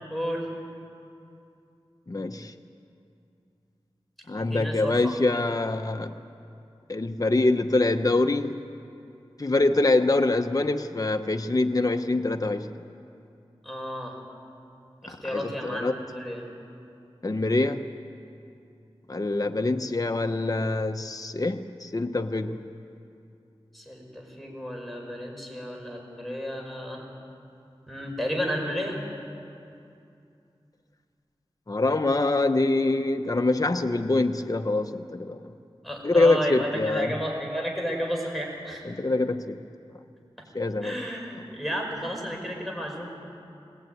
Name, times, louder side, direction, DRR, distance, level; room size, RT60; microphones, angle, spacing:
voice 1, 0.1-0.5 4.4-5.4 13.6-14.2 15.0-16.4 23.7-27.0 27.9-29.0 35.8-38.9 40.8-43.1, equal, ahead, 0 dB, 5.7 m, -32 dB
voice 2, 2.1-2.5 4.3-6.1 6.9-8.6 9.4-12.7 15.1-16.0 17.2-17.9 19.1-22.6 31.7-35.4 36.0-37.1 38.8-39.6 40.5-40.9, left 2 dB, 35° left, 6 dB, 0.9 m, -25 dB
20.5 x 20.0 x 9.4 m, 2.6 s
wide cardioid pair, 50°, 10 cm